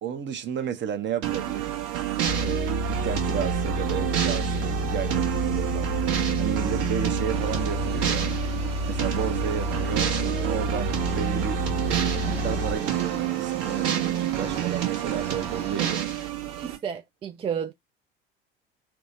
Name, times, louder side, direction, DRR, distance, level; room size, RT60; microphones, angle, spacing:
voice 1, 0.0-1.7 2.4-5.9 6.4-8.3 8.9-11.6 12.2-16.0, right 8 dB, 40° right, 0.8 m, -32 dB
sound 1, 1.2-16.8, right 11 dB, 55° right, 1.3 m, -28 dB
sound 2, 2.2-12.8, left 1 dB, 55° left, 0.9 m, -30 dB
Engine, 7.3-16.0, right 4 dB, 80° right, 1.1 m, -40 dB
voice 2, 16.6-17.7, right 7 dB, 20° right, 0.3 m, -32 dB
3.2 x 2.0 x 4.2 m
hypercardioid pair, 65°, 30 cm